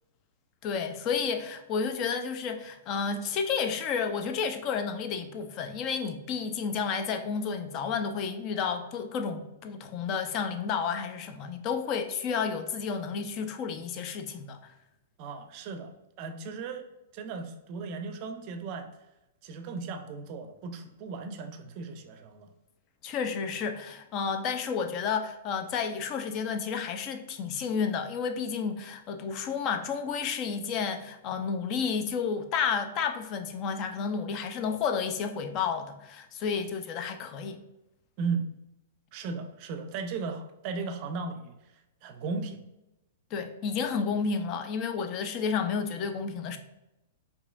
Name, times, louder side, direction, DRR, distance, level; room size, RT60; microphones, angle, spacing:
voice 1, 0.6-14.7 23.0-37.6 43.3-46.6, left 6 dB, 35° left, 7 dB, 0.4 m, -31 dB
voice 2, 15.2-16.8 17.1-18.9 19.4-22.5 38.2-38.5 39.1-42.6, right 4 dB, 40° right, 7 dB, 0.5 m, -36 dB
4.8 x 2.7 x 2.4 m, 0.91 s
figure-of-eight pair, 105°, 0 cm